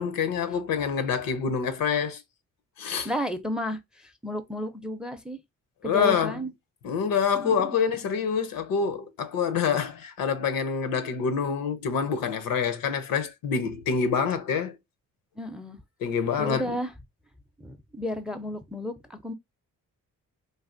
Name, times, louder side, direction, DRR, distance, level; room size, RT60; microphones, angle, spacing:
voice 1, 0.0-2.2 2.8-3.1 5.8-6.4 6.8-14.8 16.0-16.8, left 6 dB, 80° left, 0.7 m, -26 dB
voice 2, 3.0-5.4 5.8-6.5 7.3-7.8 15.4-15.8 16.4-16.9 17.6-19.3, equal, ahead, 0.4 m, -33 dB
3.3 x 2.4 x 2.5 m
cardioid pair, 70°, 34 cm